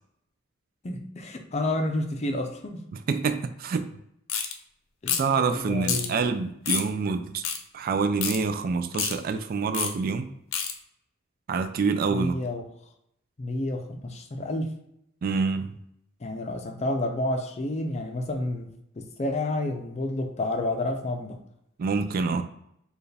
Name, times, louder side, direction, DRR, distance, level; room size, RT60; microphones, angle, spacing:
voice 1, 0.8-2.8 5.0-6.2 12.1-12.6 13.4-14.7 16.2-18.7 19.0-21.4, left 1 dB, 35° left, 4 dB, 0.5 m, -30 dB
voice 2, 3.1-3.9 5.2-7.4 7.7-10.3 11.5-12.4 15.2-15.8 21.8-22.4, right 4 dB, 45° right, 9 dB, 0.3 m, -26 dB
sound 1, 4.3-4.5 5.1-5.3 5.8-6.1 6.7-6.9 7.4-7.6 8.2-8.4 8.9-9.1 9.7-9.9 10.5-10.7, left 7 dB, 85° left, 0.6 m, -27 dB
4.6 x 2.4 x 3.3 m, 0.76 s
head